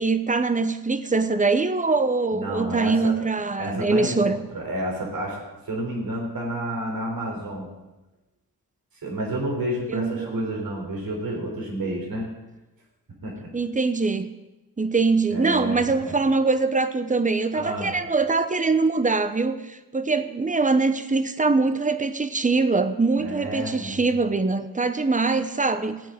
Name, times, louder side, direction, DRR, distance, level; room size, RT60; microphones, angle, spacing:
voice 1, 0.0-4.4 9.9-10.5 13.5-14.3 14.8-26.0, right 3 dB, 20° right, 11 dB, 0.9 m, -23 dB
voice 2, 2.3-3.1 3.6-5.4 5.7-7.7 9.0-12.3 13.2-13.5 15.3-15.8 16.0-16.1 17.5-18.0 23.2-24.1, right 1 dB, 75° right, -1 dB, 3.9 m, -30 dB
16.5 x 8.7 x 5.2 m, 1.0 s
wide cardioid pair, 90°, 35 cm